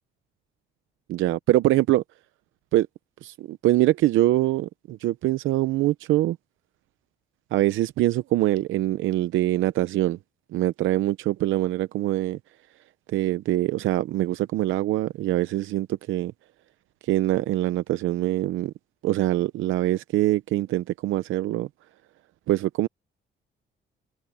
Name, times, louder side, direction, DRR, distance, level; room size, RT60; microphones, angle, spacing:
voice 1, 1.1-2.0 2.7-2.9 3.2-6.4 7.5-10.2 10.5-12.4 13.1-16.3 17.0-18.7 19.0-21.7 22.5-22.9, right 15 dB, 85° right, 0.7 m, -24 dB
cardioid pair, 90°, 20 cm